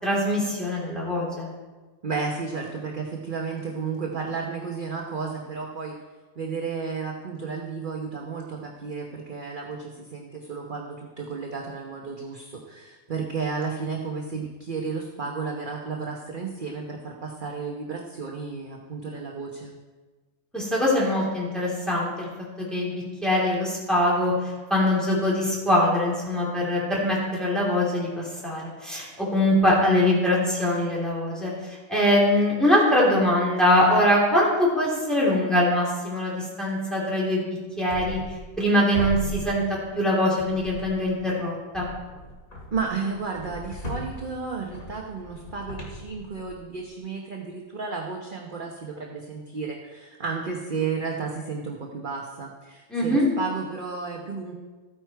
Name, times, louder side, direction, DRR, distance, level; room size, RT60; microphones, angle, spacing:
voice 1, 0.0-1.5 20.5-22.3 22.7-22.9 23.2-24.3 24.7-31.5 31.9-37.5 37.8-38.2 38.6-39.6 40.0-41.9 52.9-53.3, left 1 dB, ahead, -5 dB, 3.6 m, -22 dB
voice 2, 2.0-5.9 6.4-19.8 42.7-54.5, right 5 dB, 40° right, 0 dB, 1.2 m, -32 dB
sound 1, 37.9-38.7 38.9-40.0 40.4-41.2 41.7-46.8, left 1 dB, 80° left, 2.7 m, -38 dB
14.0 x 9.4 x 4.6 m, 1.3 s
omnidirectional pair, 1.5 m